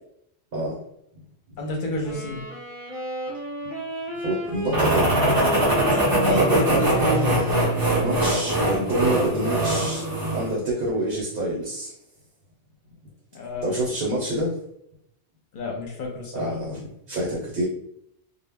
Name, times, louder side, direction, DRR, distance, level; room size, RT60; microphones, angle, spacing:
voice 1, 1.6-2.4 5.9-7.4 13.3-13.7 15.5-16.5, left 1 dB, 55° left, 0 dB, 0.7 m, -29 dB
Wind instrument woodwind instrument, 2.0-8.8, right 1 dB, ahead, 0.7 m, -34 dB
voice 2, 4.1-5.7 6.1-6.8 8.0-11.9 13.6-14.6 16.3-17.6, right 1 dB, 60° right, -3 dB, 0.8 m, -27 dB
sound 1, 4.7-10.5, right 1 dB, 30° right, 0.5 m, -22 dB
2.0 x 2.0 x 3.4 m, 0.76 s
omnidirectional pair, 1.1 m